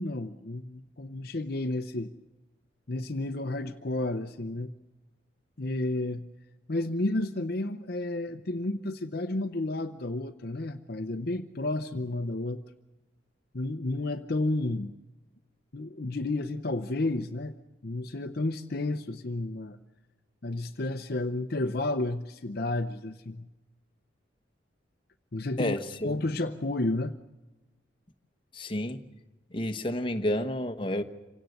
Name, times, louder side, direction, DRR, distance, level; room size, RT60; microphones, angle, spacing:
voice 1, 0.0-2.1 2.9-4.7 5.6-6.2 6.7-12.6 13.5-14.9 15.7-17.5 17.8-19.8 20.4-23.5 25.3-25.8 26.0-27.2, left 2 dB, 50° left, 0.8 m, -31 dB
voice 2, 25.6-26.2 28.5-29.0 29.5-31.0, left 1 dB, 25° left, 1.1 m, -30 dB
27.0 x 17.5 x 7.9 m
head